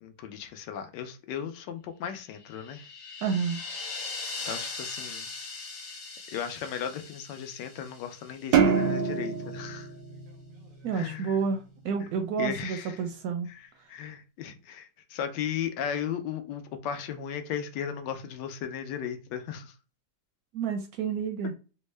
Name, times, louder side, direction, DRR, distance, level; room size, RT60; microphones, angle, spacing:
voice 1, 0.0-2.9 4.5-5.3 6.3-9.9 10.9-11.4 12.4-13.0 13.5-19.7, left 8 dB, 80° left, 1.2 m, -36 dB
sound 1, 2.4-8.6, left 3 dB, 55° left, 1.0 m, -40 dB
voice 2, 3.2-3.6 10.8-13.5 20.5-21.5, right 6 dB, 70° right, 0.9 m, -30 dB
sound 2, 8.5-11.1, right 6 dB, 90° right, 1.3 m, -26 dB
3.5 x 2.1 x 3.1 m
omnidirectional pair, 1.9 m